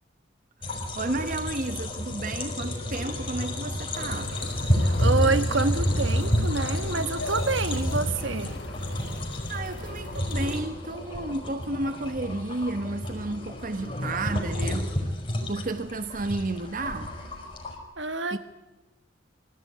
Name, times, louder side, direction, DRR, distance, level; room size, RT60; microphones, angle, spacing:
sound 1, 0.6-17.8, equal, 30° left, 5.1 m, -30 dB
voice 1, 0.6-4.4 9.5-14.9 15.5-17.1 18.3-18.4, right 2 dB, 45° right, 1.0 m, -32 dB
sound 2, 3.9-10.6, left 1 dB, 75° left, 2.9 m, -38 dB
voice 2, 5.0-8.6 18.0-18.4, right 3 dB, 80° right, 1.7 m, -27 dB
24.0 x 16.5 x 9.7 m
head